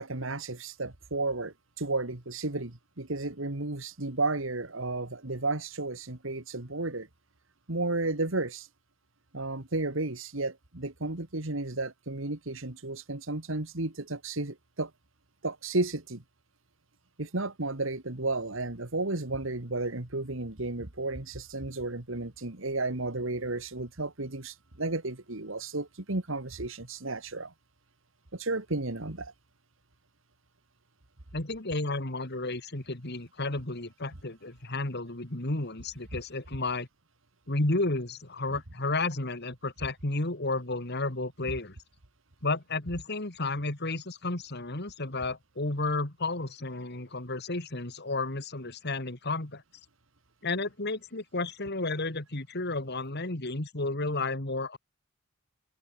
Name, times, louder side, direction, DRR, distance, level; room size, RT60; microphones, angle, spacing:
voice 1, 0.0-7.1 7.7-8.7 9.3-14.9 15.4-16.2 17.2-27.5 28.3-29.3, right 2 dB, 65° right, 2.2 m, -33 dB
voice 2, 31.3-36.9 37.5-41.8 42.4-49.6 50.4-54.8, left 2 dB, 55° left, 2.6 m, -32 dB
open air
head